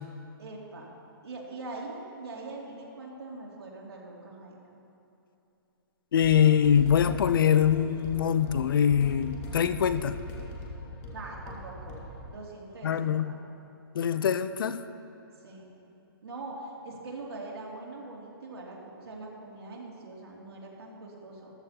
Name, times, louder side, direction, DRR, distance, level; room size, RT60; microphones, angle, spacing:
voice 1, 0.4-0.9 1.2-4.7 11.1-13.4 15.4-15.7 16.2-21.5, right 2 dB, 80° right, -3 dB, 2.7 m, -42 dB
voice 2, 6.1-10.2 12.8-13.3 13.9-14.8, left 8 dB, 60° left, 13 dB, 0.5 m, -23 dB
sound 1, 6.1-12.2, left 1 dB, 25° left, 1.5 m, -41 dB
14.0 x 14.0 x 2.9 m, 2.8 s
hypercardioid pair, 155°, 13 cm